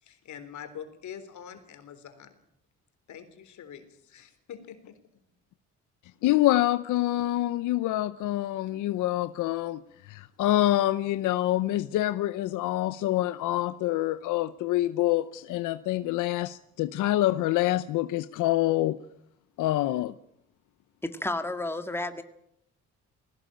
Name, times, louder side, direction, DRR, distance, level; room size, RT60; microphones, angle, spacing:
voice 1, 0.0-2.4 3.1-5.0, left 8 dB, 70° left, 3.9 m, -44 dB
voice 2, 6.2-19.0 19.6-20.1, left 15 dB, 90° left, 0.7 m, -26 dB
voice 3, 21.0-22.2, left 2 dB, 10° left, 1.9 m, -31 dB
20.0 x 18.0 x 8.9 m
cardioid pair, 90°, 30 cm